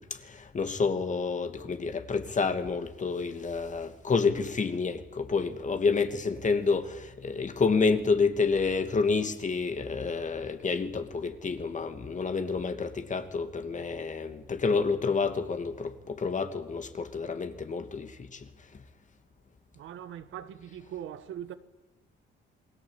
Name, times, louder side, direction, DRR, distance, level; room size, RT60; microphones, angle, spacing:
voice 1, 0.0-18.8, left 4 dB, 40° left, 2.7 m, -29 dB
voice 2, 19.7-21.5, right 10 dB, 80° right, 1.7 m, -41 dB
28.5 x 20.0 x 9.1 m
cardioid pair, 90°, 20 cm